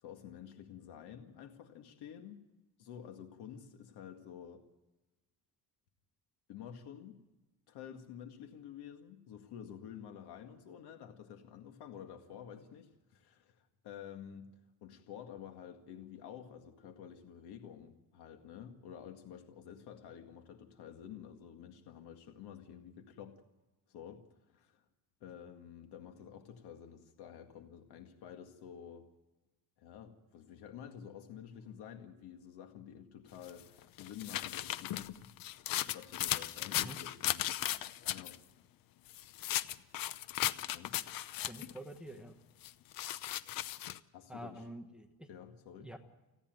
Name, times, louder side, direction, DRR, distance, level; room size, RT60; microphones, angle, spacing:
voice 1, 0.0-2.4 2.8-4.6 6.5-7.2 7.7-14.5 14.8-23.4 23.9-24.8 25.2-29.1 29.8-35.3 35.8-38.4 40.7-41.2 44.1-44.7 45.3-45.9, left 9 dB, 90° left, 5 dB, 2.0 m, -50 dB
sound 1, 33.5-38.4 39.1-41.8 42.6-44.0, left 13 dB, 60° left, 0.8 m, -36 dB
voice 2, 41.5-42.3 44.3-45.3 45.8-46.0, right 1 dB, ahead, 6 dB, 1.2 m, -47 dB
30.0 x 10.5 x 9.1 m, 1.1 s
cardioid pair, 180°, 38 cm